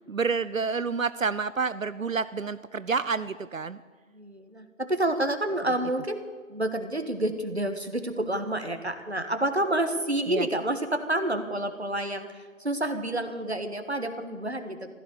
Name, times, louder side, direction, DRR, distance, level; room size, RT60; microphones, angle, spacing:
voice 1, 0.1-3.8 10.3-10.5, right 5 dB, 75° right, 15 dB, 0.6 m, -29 dB
voice 2, 4.1-6.2 6.5-12.3 12.6-14.9, right 1 dB, 50° right, 7 dB, 1.6 m, -29 dB
16.0 x 12.0 x 6.7 m, 1.5 s
figure-of-eight pair, 180°, 41 cm